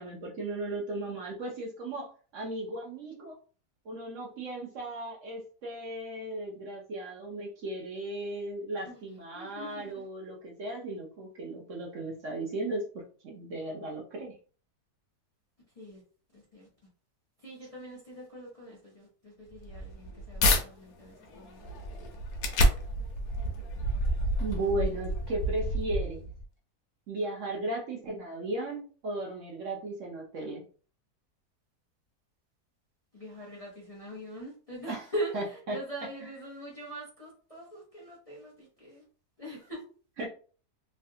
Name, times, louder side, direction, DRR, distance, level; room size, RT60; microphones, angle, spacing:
voice 1, 0.0-3.4 3.8-14.4 24.4-26.3 27.1-30.6 34.9-35.0 35.3-35.8 40.2-40.3, right 2 dB, 65° right, -1 dB, 0.8 m, -36 dB
voice 2, 9.3-10.1 15.7-16.0 16.3-16.7 17.4-21.7 33.1-39.0 39.4-39.8, right 1 dB, 30° left, -5 dB, 0.7 m, -42 dB
sound 1, 19.5-20.6 21.2-26.4, equal, 70° left, 1.1 m, -29 dB
3.2 x 2.2 x 2.7 m, 0.40 s
omnidirectional pair, 1.7 m